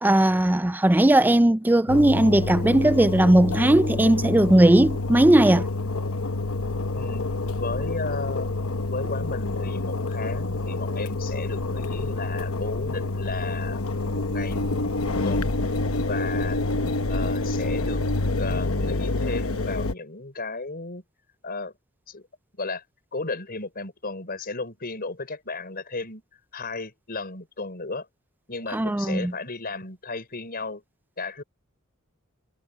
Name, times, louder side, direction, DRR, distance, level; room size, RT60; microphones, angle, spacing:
voice 1, 0.0-5.7 28.7-29.3, right 1 dB, 10° right, 0.4 m, -18 dB
Engine, 1.9-19.9, left 2 dB, 80° left, 1.1 m, -27 dB
voice 2, 6.9-7.3 7.6-8.5 8.9-13.8 14.1-14.7 15.0-15.5 16.1-16.6 17.1-18.0 18.3-21.0 21.4-21.7 22.1-22.3 22.6-22.8 23.1-26.2 26.5-28.1 28.5-30.8 31.2-31.4, left 3 dB, 45° left, 5.2 m, -34 dB
head